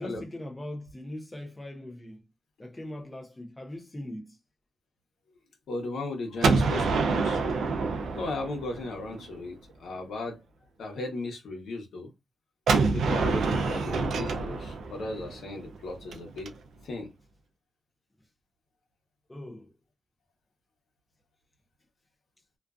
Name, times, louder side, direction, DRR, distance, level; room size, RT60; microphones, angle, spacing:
voice 1, 0.0-2.2 2.6-4.4 19.3-19.7, left 1 dB, 10° left, 0.5 m, -40 dB
voice 2, 5.7-7.4 8.1-10.4 10.8-12.1 12.8-16.5 16.8-17.1, left 2 dB, 85° left, 0.9 m, -36 dB
Gunshot gunfire, 6.4-9.2 12.7-16.5, right 4 dB, 90° right, 0.3 m, -27 dB
2.5 x 2.3 x 2.2 m
wide cardioid pair, 170°, 0 cm